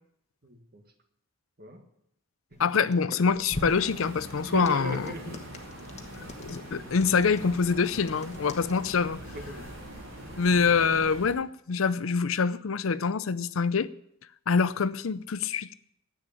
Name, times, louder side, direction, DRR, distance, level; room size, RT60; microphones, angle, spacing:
voice 1, 0.4-0.8 1.6-1.8 2.5-3.2 4.4-5.5 9.3-9.7, right 1 dB, 50° right, 1.7 m, -39 dB
sound 1, 2.5-8.8, left 1 dB, 35° left, 1.2 m, -44 dB
voice 2, 2.6-5.1 6.4-9.2 10.4-13.9 14.5-15.7, left 5 dB, 85° left, 0.6 m, -25 dB
sound 2, 3.5-11.3, equal, 85° right, 4.3 m, -43 dB
9.8 x 8.7 x 8.9 m
head